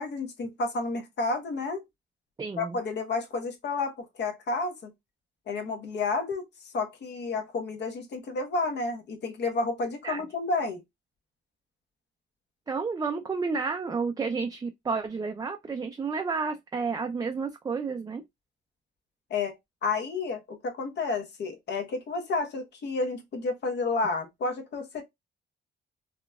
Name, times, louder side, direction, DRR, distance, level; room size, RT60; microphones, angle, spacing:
voice 1, 0.0-1.8 2.6-4.9 5.5-6.4 6.7-10.8 19.3-25.0, left 3 dB, 60° left, 1.0 m, -31 dB
voice 2, 2.4-2.8 10.0-10.2 12.7-18.2, right 4 dB, 20° right, 0.4 m, -31 dB
3.9 x 2.2 x 2.2 m
cardioid pair, 90°, 20 cm